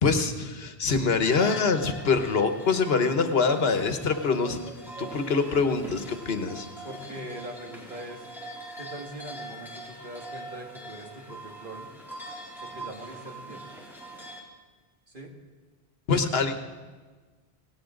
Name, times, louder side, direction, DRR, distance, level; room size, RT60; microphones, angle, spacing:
voice 1, 0.0-4.6 5.0-6.6 16.1-16.5, left 4 dB, 80° left, 8 dB, 1.3 m, -24 dB
sound 1, 1.2-14.4, right 1 dB, ahead, 2.9 m, -43 dB
voice 2, 6.8-8.2 8.7-11.9 12.6-13.8 15.1-15.3, right 1 dB, 55° right, 1 dB, 2.2 m, -42 dB
18.0 x 18.0 x 3.8 m, 1.4 s
omnidirectional pair, 1.0 m